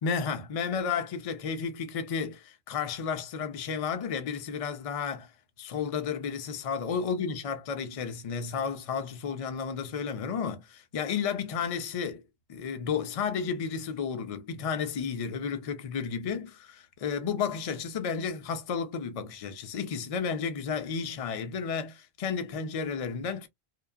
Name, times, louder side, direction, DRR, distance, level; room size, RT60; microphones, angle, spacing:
voice 1, 0.0-5.3 5.6-12.2 12.5-23.5, left 6 dB, 45° left, 0.4 m, -32 dB
2.8 x 2.2 x 2.3 m
omnidirectional pair, 1.1 m